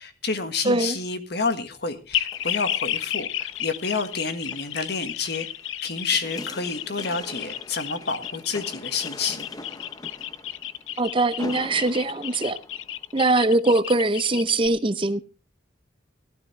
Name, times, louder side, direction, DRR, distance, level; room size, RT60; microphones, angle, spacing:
voice 1, 0.0-5.5 5.8-9.5, left 4 dB, 55° left, 1.6 m, -29 dB
voice 2, 0.6-1.0 11.0-12.6 13.1-15.2, right 2 dB, 25° right, 0.6 m, -22 dB
sound 1, 2.1-14.7, left 11 dB, 80° left, 0.6 m, -32 dB
sound 2, 2.2-13.5 14.0-14.1, left 2 dB, 20° left, 0.8 m, -43 dB
17.0 x 12.5 x 3.3 m
head